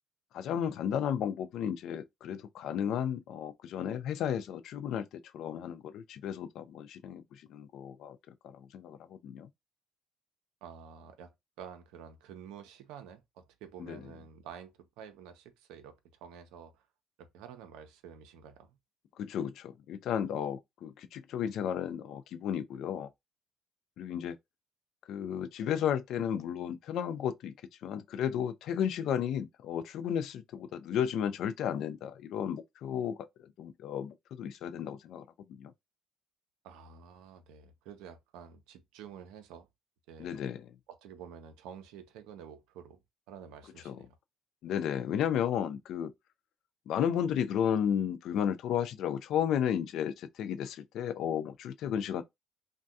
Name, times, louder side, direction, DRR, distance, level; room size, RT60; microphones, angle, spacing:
voice 1, 0.3-8.2 8.4-9.5 13.9-14.0 19.2-23.1 24.0-24.4 25.1-27.5 27.8-33.2 33.6-35.7 40.2-40.7 43.9-44.0 44.6-46.1 46.9-52.2, left 9 dB, 70° left, 0.4 m, -33 dB
voice 2, 10.6-16.9 17.2-18.8 36.6-39.7 40.1-40.4 40.9-43.0 43.3-44.2, right 8 dB, 85° right, 0.6 m, -49 dB
2.7 x 2.2 x 3.4 m
supercardioid pair, 70°, 0 cm